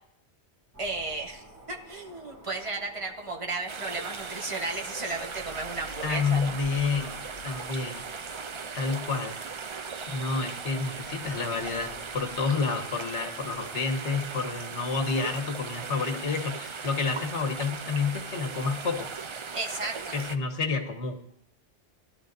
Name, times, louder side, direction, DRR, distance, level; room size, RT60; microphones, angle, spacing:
sound 1, 0.7-12.4, left 1 dB, 10° right, 2.9 m, -51 dB
voice 1, 0.8-1.4 1.7-6.6 19.5-20.2, right 3 dB, 30° right, 1 dB, 1.3 m, -34 dB
sound 2, 3.7-20.4, right 5 dB, 50° right, 0.3 m, -38 dB
voice 2, 6.0-7.2 7.4-8.0 8.7-9.3 9.6-9.8 10.1-19.1 20.1-21.2, left 4 dB, 80° left, 4 dB, 1.5 m, -29 dB
17.5 x 12.0 x 2.6 m, 0.73 s
omnidirectional pair, 1.2 m